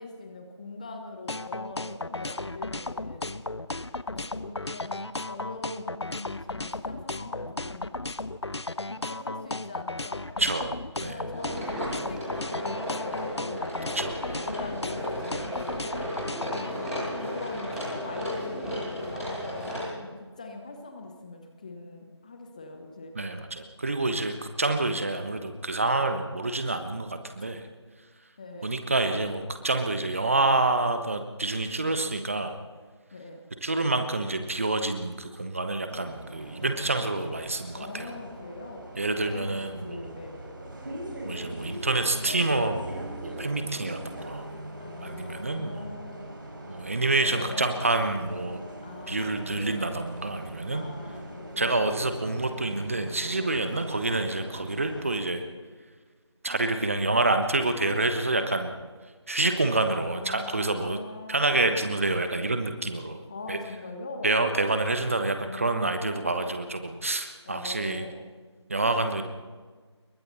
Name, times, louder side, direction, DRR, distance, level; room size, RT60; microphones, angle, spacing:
voice 1, 0.0-3.3 4.2-8.0 8.8-10.3 11.0-13.6 14.2-15.8 16.7-23.2 28.4-28.7 33.1-33.4 36.6-36.8 37.7-38.9 39.1-40.4 44.8-46.3 47.2-47.9 48.2-49.9 50.7-51.8 53.6-53.8 59.9-61.9 63.3-64.3 65.4-66.3 67.4-68.2, left 2 dB, 15° left, 5 dB, 1.4 m, -42 dB
sound 1, 1.3-16.7, left 2 dB, 65° left, 1.0 m, -34 dB
voice 2, 10.4-11.2 13.9-14.5 23.2-27.6 28.6-32.6 33.6-38.1 39.0-40.1 41.2-44.5 45.0-45.9 46.7-48.6 49.1-50.8 51.6-55.4 56.4-58.7 59.3-61.0 61.3-63.2 63.5-63.6 64.2-68.1 68.7-69.2, right 2 dB, 30° right, 7 dB, 1.2 m, -27 dB
sound 2, 11.3-19.9, equal, 5° right, 4.1 m, -34 dB
Bus, 35.9-55.2, right 1 dB, 45° right, 5.4 m, -41 dB
27.5 x 23.0 x 4.3 m, 1.5 s
figure-of-eight pair, 165°, 15 cm